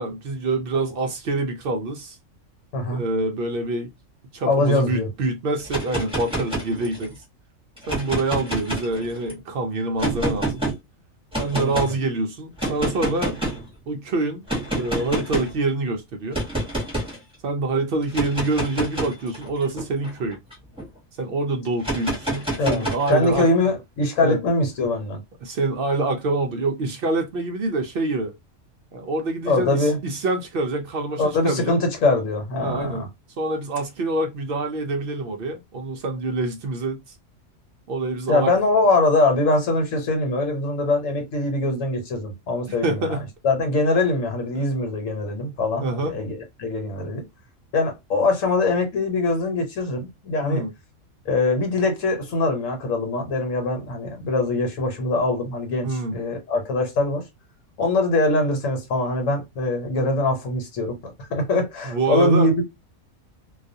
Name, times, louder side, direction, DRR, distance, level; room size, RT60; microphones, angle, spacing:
voice 1, 0.0-2.2 2.9-3.9 4.3-7.2 7.9-10.6 11.4-13.4 13.9-14.5 14.7-16.4 17.4-20.4 21.2-23.5 24.2-24.4 25.4-28.3 28.9-31.8 32.6-33.1 33.4-37.0 37.9-38.5 42.7-43.2 44.6-44.7 45.8-46.1 50.4-50.7 55.8-56.2 61.8-62.5, right 2 dB, 65° right, 0.5 m, -26 dB
voice 2, 4.5-5.1 11.5-12.0 22.6-25.2 29.5-30.0 31.2-33.1 38.3-43.2 43.4-47.2 47.7-50.7 51.2-57.2 57.8-62.6, left 2 dB, 70° left, 1.2 m, -23 dB
sound 1, 5.6-7.1 7.8-9.3 10.0-10.7 11.3-11.9 12.6-13.7 14.5-15.6 16.3-17.2 18.0-20.9 21.8-23.4, right 1 dB, 5° right, 0.9 m, -28 dB
2.4 x 2.3 x 2.6 m
omnidirectional pair, 1.4 m